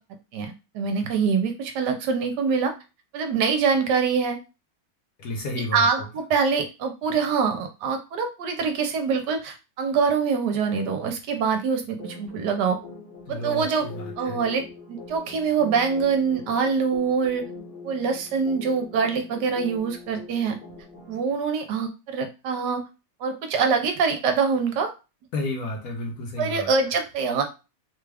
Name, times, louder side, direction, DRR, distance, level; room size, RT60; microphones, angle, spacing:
voice 1, 0.3-2.7 3.1-4.4 5.7-12.8 13.3-13.9 14.2-17.4 17.8-20.6 21.1-22.8 23.2-24.9 26.4-27.4, right 5 dB, 75° right, 5 dB, 1.2 m, -24 dB
voice 2, 5.2-5.9 13.3-14.4 25.3-26.7, left 2 dB, 60° left, 0 dB, 1.3 m, -32 dB
sound 1, 12.0-21.3, left 3 dB, 35° left, 1.0 m, -43 dB
3.5 x 2.3 x 3.3 m, 0.29 s
omnidirectional pair, 2.0 m